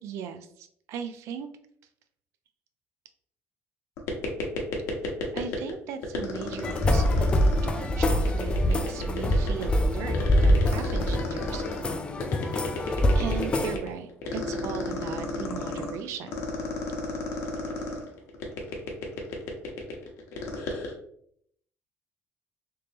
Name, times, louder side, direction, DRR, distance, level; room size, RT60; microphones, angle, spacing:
voice 1, 0.0-1.5 5.3-11.6 13.1-16.4, right 7 dB, 75° right, 9 dB, 0.4 m, -37 dB
sound 1, 4.0-5.7 6.0-20.9, left 4 dB, 80° left, 0.9 m, -33 dB
sound 2, 6.6-13.8, left 1 dB, 20° left, 0.3 m, -24 dB
3.3 x 2.9 x 3.3 m, 0.67 s
cardioid pair, 150°, 5 cm